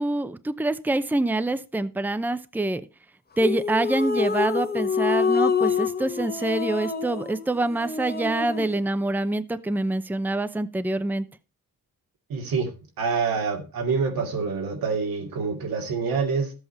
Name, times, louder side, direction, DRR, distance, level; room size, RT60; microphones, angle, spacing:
voice 1, 0.0-2.8 3.4-11.2, right 2 dB, 5° right, 12 dB, 0.7 m, -26 dB
sound 1, 3.4-8.8, left 5 dB, 30° left, 1.2 m, -26 dB
voice 2, 12.3-16.5, right 5 dB, 90° right, 3 dB, 2.6 m, -26 dB
13.0 x 8.1 x 4.4 m, 0.32 s
cardioid pair, 105°, 34 cm